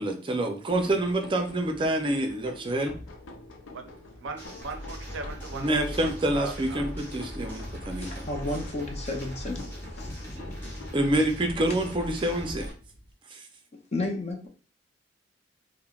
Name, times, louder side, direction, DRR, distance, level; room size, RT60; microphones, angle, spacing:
voice 1, 0.0-2.9 5.5-8.3 10.9-12.7, right 1 dB, 25° right, 4 dB, 0.4 m, -27 dB
sound 1, 0.7-13.1, left 2 dB, 85° left, 0.5 m, -47 dB
voice 2, 3.6-6.9, right 4 dB, 90° right, 6 dB, 0.4 m, -40 dB
sound 2, 4.4-12.7, equal, 15° left, 0.8 m, -39 dB
voice 3, 8.0-9.6 10.0-10.1 13.9-14.5, left 2 dB, 35° left, 3 dB, 0.5 m, -32 dB
3.1 x 2.0 x 2.3 m, 0.40 s
head